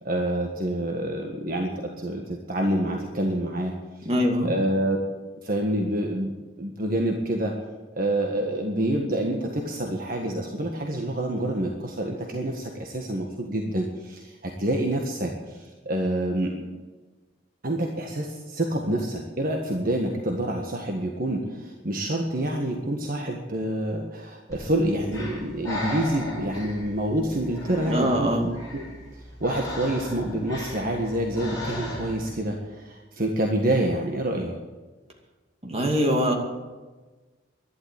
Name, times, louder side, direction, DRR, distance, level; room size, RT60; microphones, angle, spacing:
voice 1, 0.0-4.1 4.4-5.0 5.4-7.5 7.9-16.5 17.6-28.1 28.7-28.8 29.4-34.5, right 1 dB, 50° right, 1 dB, 1.6 m, -27 dB
voice 2, 4.0-4.5 27.9-28.5 35.6-36.3, equal, 35° right, 1 dB, 2.5 m, -23 dB
Breathing, 24.5-32.4, left 1 dB, 20° left, 6.5 m, -37 dB
11.5 x 11.5 x 9.0 m, 1.3 s
head